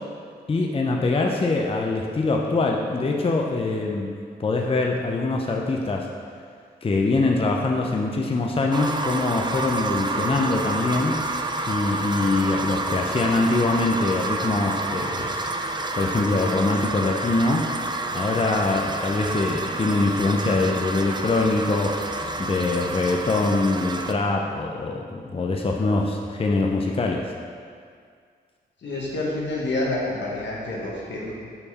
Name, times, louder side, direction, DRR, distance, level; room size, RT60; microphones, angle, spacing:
voice 1, 0.5-4.1 4.4-6.1 6.8-11.2 11.7-15.4 15.9-17.7 18.1-22.0 22.4-27.3, left 3 dB, 30° left, 1 dB, 0.6 m, -23 dB
sound 1, 8.7-24.1, right 2 dB, 25° right, 0.4 m, -29 dB
voice 2, 28.8-31.3, left 2 dB, 80° left, -5 dB, 1.4 m, -28 dB
5.4 x 4.6 x 4.2 m, 2.1 s
cardioid pair, 60°, 18 cm